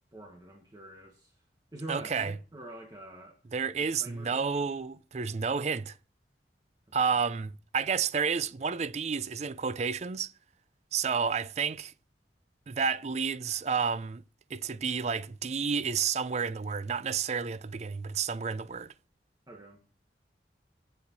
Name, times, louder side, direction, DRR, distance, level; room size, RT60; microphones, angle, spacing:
voice 1, 0.1-1.3 1.7-3.4 3.7-4.7 19.5-19.8, right 1 dB, 20° right, 1.3 m, -46 dB
voice 2, 1.9-2.3 3.5-6.0 6.9-10.3 10.9-11.9 12.7-14.2 14.5-18.9, right 6 dB, 40° right, 0.4 m, -30 dB
8.6 x 7.9 x 4.0 m
head